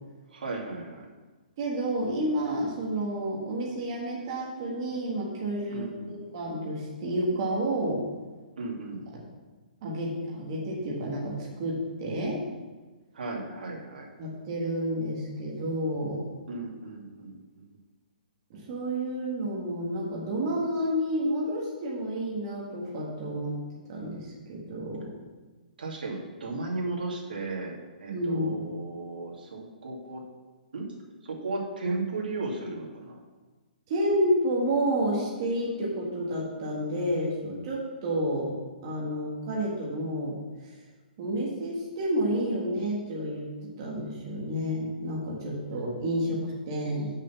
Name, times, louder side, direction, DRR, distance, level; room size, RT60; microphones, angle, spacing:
voice 1, 0.3-1.1 5.7-6.2 8.6-9.0 13.1-14.1 16.5-17.7 25.8-30.2 30.7-30.9 31.2-33.3, right 3 dB, 80° right, -2 dB, 2.4 m, -35 dB
voice 2, 1.6-8.0 9.8-12.4 14.2-16.3 18.5-23.6 23.9-25.1 28.1-28.7 33.9-38.5 38.8-40.4 40.6-40.7 41.2-47.1, right 1 dB, 30° right, -4 dB, 1.4 m, -30 dB
6.8 x 6.4 x 5.9 m, 1.3 s
hypercardioid pair, 175°, 5 cm